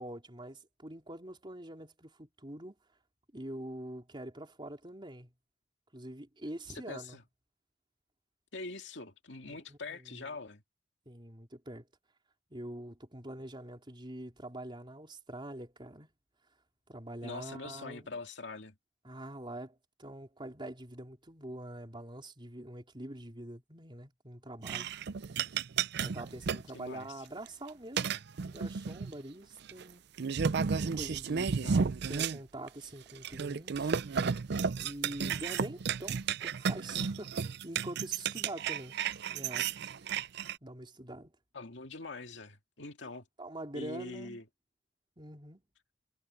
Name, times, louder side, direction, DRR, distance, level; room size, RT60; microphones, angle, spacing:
voice 1, 0.0-2.7 3.3-5.3 5.9-7.2 9.4-10.3 11.1-11.9 12.5-16.1 16.9-18.2 19.0-24.9 26.0-28.1 28.5-30.0 30.7-31.5 32.1-34.0 34.8-38.9 39.3-39.7 40.0-40.1 40.6-41.3 43.0-44.4 45.2-45.6, right 1 dB, 25° right, 4.1 m, -45 dB
voice 2, 6.9-7.2 8.5-10.6 17.2-18.7 26.7-27.1 31.6-31.9 41.5-43.2 43.7-44.4, left 3 dB, 70° left, 2.4 m, -43 dB
sound 1, 24.6-26.7 27.4-27.7 28.0-29.1 29.7-29.8 30.2-32.4 32.7-32.8 33.1-40.6, right 6 dB, 60° right, 0.5 m, -33 dB
head